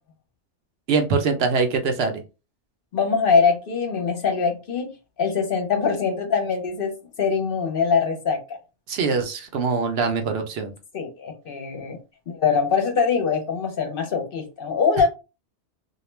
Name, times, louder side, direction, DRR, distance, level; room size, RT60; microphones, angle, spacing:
voice 1, 0.9-2.2 8.9-10.7, right 4 dB, 70° right, 0.8 m, -23 dB
voice 2, 2.9-4.9 5.2-8.6 10.9-12.0 12.3-15.1, left 5 dB, 60° left, 0.7 m, -23 dB
2.3 x 2.1 x 3.0 m
omnidirectional pair, 1.1 m